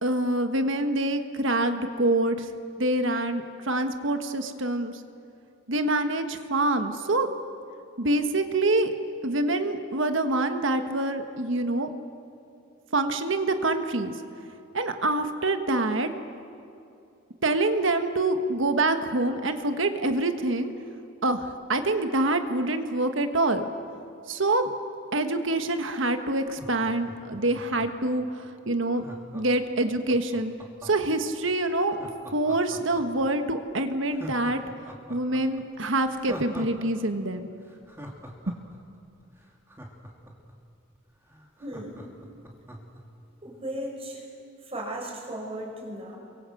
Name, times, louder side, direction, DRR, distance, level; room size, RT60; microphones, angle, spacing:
voice 1, 0.0-2.5 2.8-4.9 5.7-7.3 8.0-8.9 9.2-11.9 12.9-14.1 14.7-16.1 17.4-20.7 21.2-23.6 24.3-24.7 25.1-29.0 29.3-30.5 30.8-32.0 32.3-34.6 35.1-37.5 38.5-38.6, right 2 dB, 60° right, 7 dB, 1.5 m, -26 dB
Laughter, 26.4-28.1 28.9-31.1 31.9-33.3 33.6-33.7 34.1-36.9 37.1-37.2 37.6-40.5 41.0-41.1 41.3-43.0 43.4-43.5, equal, 10° right, 2.7 m, -43 dB
voice 2, 41.6-42.1 43.4-44.3 44.7-46.2, right 1 dB, 30° right, -1 dB, 5.7 m, -36 dB
29.0 x 24.0 x 7.9 m, 2.6 s
head